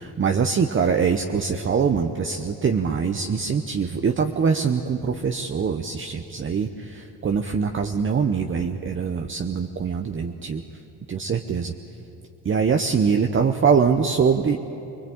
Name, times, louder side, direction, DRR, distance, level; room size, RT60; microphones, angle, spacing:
voice 1, 0.0-10.6 11.1-11.7 12.4-14.6, right 6 dB, 30° right, 5 dB, 1.0 m, -23 dB
25.0 x 20.5 x 8.8 m, 2.9 s
cardioid pair, 100°, 40 cm